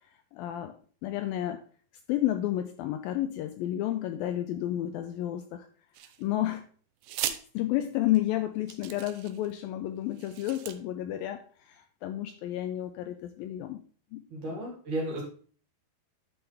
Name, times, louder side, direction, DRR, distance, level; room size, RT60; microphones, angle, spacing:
voice 1, 0.3-0.7 1.0-1.6 2.1-5.7 6.2-6.7 7.2-11.4 11.7-13.8 14.1-14.6, left 13 dB, 85° left, 8 dB, 2.1 m, -31 dB
sound 1, 5.9-6.5 7.0-7.4 8.2-8.3 8.7-9.5 10.1-10.8, right 12 dB, 80° right, 2.3 m, -37 dB
voice 2, 14.3-15.2, right 1 dB, 55° right, -1 dB, 3.6 m, -33 dB
10.5 x 5.6 x 3.4 m, 0.44 s
omnidirectional pair, 4.5 m